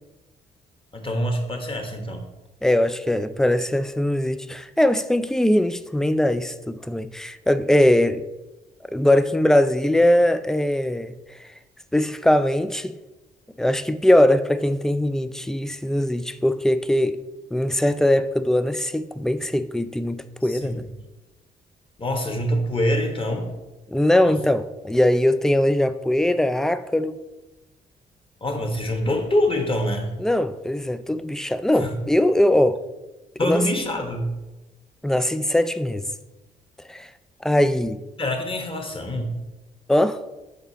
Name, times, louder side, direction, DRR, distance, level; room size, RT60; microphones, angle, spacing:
voice 1, 0.9-2.2 20.5-20.9 22.0-23.5 24.2-24.3 28.4-30.1 31.7-31.9 33.4-34.3 38.2-39.3, left 1 dB, 25° left, 1.3 m, -25 dB
voice 2, 2.6-8.2 8.9-11.5 11.9-13.0 13.6-17.2 17.5-20.9 23.9-27.2 30.2-32.8 33.4-33.6 35.0-36.1 36.9-37.1 37.4-38.0 39.9-40.2, left 1 dB, ahead, 0.3 m, -21 dB
6.8 x 4.0 x 4.0 m
figure-of-eight pair, 45°, 21 cm